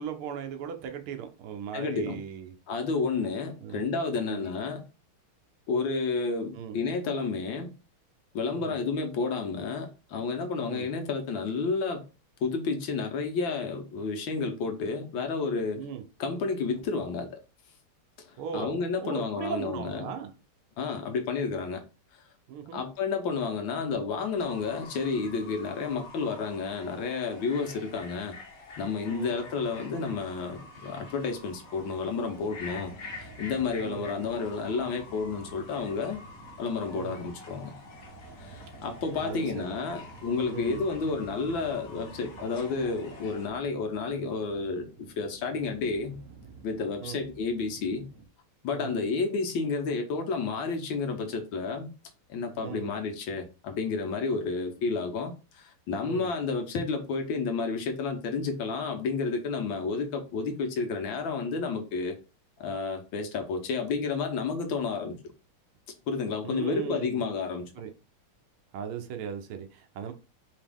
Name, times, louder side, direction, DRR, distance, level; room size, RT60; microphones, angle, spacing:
voice 1, 0.0-2.5 3.6-3.8 4.2-4.4 6.5-6.8 8.5-8.8 10.6-10.9 15.7-16.0 18.4-20.3 22.5-22.8 29.1-29.3 33.8-34.1 36.9-37.2 39.2-39.7 40.4-40.8 47.0-47.2 48.7-48.9 52.6-52.9 56.0-56.3 66.4-67.2 67.8-67.9 68.7-70.1, right 8 dB, 80° right, 1.6 m, -38 dB
voice 2, 1.7-2.2 2.7-4.8 5.7-7.7 8.3-12.0 12.4-15.8 16.2-17.3 18.2-20.1 20.8-21.8 22.1-22.2 22.7-28.3 28.8-32.9 33.2-36.2 36.6-37.7 38.4-44.9 45.2-46.2 46.6-48.1 48.6-51.9 52.3-62.2 62.6-65.2 66.1-67.7, left 4 dB, 70° left, 1.5 m, -31 dB
Fowl / Bird, 24.4-43.5, left 3 dB, 50° left, 1.2 m, -48 dB
sound 1, 29.2-48.3, right 3 dB, 55° right, 1.2 m, -51 dB
5.0 x 3.0 x 3.5 m
omnidirectional pair, 2.4 m